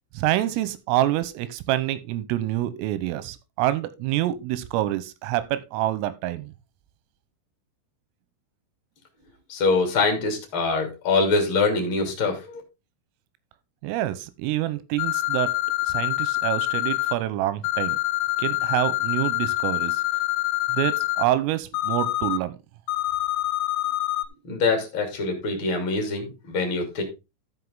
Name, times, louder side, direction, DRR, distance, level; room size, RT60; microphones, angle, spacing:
voice 1, 0.1-6.5 13.8-15.5 15.9-18.0 18.4-20.0 20.7-22.6, right 14 dB, 90° right, 3.4 m, -26 dB
voice 2, 9.5-12.6 24.4-27.0, left 3 dB, 30° left, 2.4 m, -24 dB
sound 1, 15.0-17.1 17.6-21.2 21.7-22.4 22.9-24.3, left 18 dB, 85° left, 3.4 m, -26 dB
14.0 x 5.6 x 3.6 m
omnidirectional pair, 5.9 m